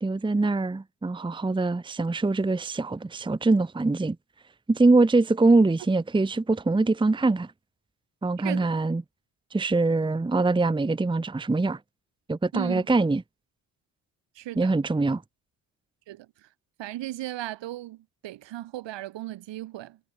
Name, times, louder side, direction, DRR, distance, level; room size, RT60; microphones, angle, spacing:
voice 1, 0.0-4.2 4.7-7.5 8.2-9.0 9.5-11.8 12.3-13.2 14.6-15.2, right 3 dB, 10° right, 1.0 m, -23 dB
voice 2, 12.5-12.9 14.4-14.8 16.1-16.5 16.8-20.0, right 15 dB, 70° right, 3.9 m, -36 dB
supercardioid pair, 70°, 46 cm